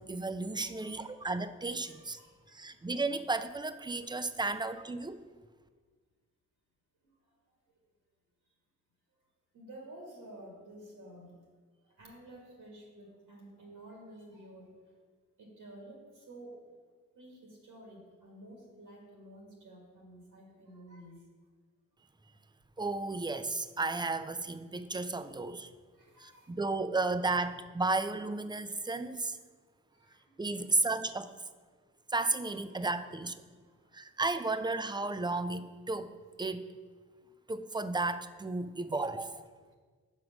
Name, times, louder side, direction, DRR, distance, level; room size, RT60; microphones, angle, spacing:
voice 1, 0.0-2.2 2.5-5.2 22.8-25.7 26.2-29.4 30.4-31.3 32.1-33.4 33.9-36.1 36.4-36.7 37.5-39.4, right 3 dB, 15° right, 11 dB, 0.4 m, -33 dB
voice 2, 0.6-1.3 1.8-2.7 9.5-11.3 12.0-14.7 15.4-16.0 16.3-16.6 17.2-21.1 26.0-26.5 29.9-30.3 32.7-33.1, right 1 dB, 80° right, -1 dB, 1.9 m, -52 dB
5.1 x 4.6 x 6.2 m, 1.5 s
supercardioid pair, 40°, 32 cm